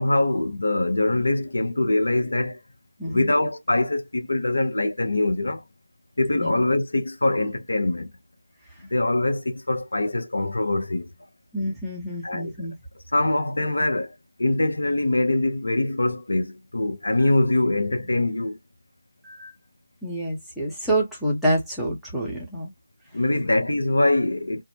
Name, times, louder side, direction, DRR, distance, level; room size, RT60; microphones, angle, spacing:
voice 1, 0.0-2.6 3.1-5.6 6.2-8.1 8.9-11.1 12.2-12.5 13.1-14.1 14.4-18.6 23.1-24.6, left 2 dB, 70° left, 0.6 m, -23 dB
voice 2, 3.0-3.3 6.3-6.6 11.5-12.7 19.2-19.5 20.0-22.7, right 1 dB, ahead, 0.7 m, -27 dB
2.2 x 2.0 x 2.9 m
figure-of-eight pair, 160°, 0 cm